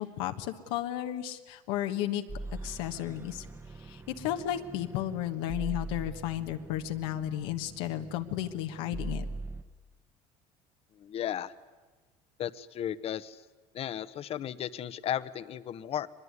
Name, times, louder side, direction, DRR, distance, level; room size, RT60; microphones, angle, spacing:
voice 1, 0.0-2.2 2.6-3.5 3.9-9.2, left 12 dB, 85° left, 6 dB, 1.3 m, -33 dB
sound 1, 2.3-9.6, right 2 dB, 15° right, 1.2 m, -42 dB
voice 2, 11.0-11.5 12.4-13.4 13.7-16.1, left 10 dB, 45° left, 15 dB, 1.0 m, -35 dB
23.0 x 21.0 x 9.7 m, 1.3 s
supercardioid pair, 105°, 14 cm